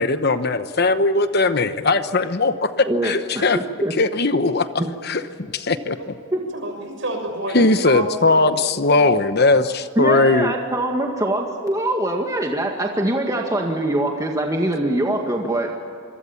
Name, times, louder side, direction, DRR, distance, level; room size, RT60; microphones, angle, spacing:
voice 1, 0.0-3.6 4.0-4.7 5.0-5.2 5.5-6.1 7.5-10.5, left 3 dB, 50° left, 10 dB, 1.0 m, -19 dB
voice 2, 2.9-3.9 6.3-6.4 10.0-15.7, right 1 dB, 15° right, 1 dB, 1.9 m, -23 dB
voice 3, 6.5-8.6 9.0-9.2, right 1 dB, 65° right, 4 dB, 6.6 m, -29 dB
27.0 x 22.5 x 7.2 m, 2.4 s
head